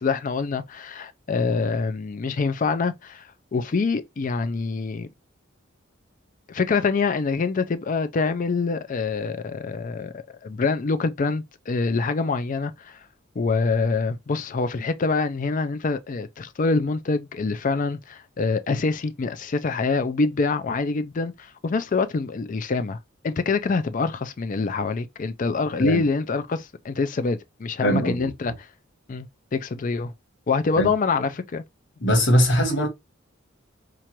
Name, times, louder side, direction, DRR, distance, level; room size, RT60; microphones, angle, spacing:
voice 1, 0.0-5.1 6.5-10.1 10.4-13.0 13.4-23.0 23.2-28.5 29.1-30.1 30.5-31.6, left 4 dB, 40° left, 0.4 m, -25 dB
voice 2, 27.8-28.3 30.8-30.9 32.0-32.9, equal, 65° left, 1.3 m, -20 dB
4.4 x 2.5 x 2.9 m
head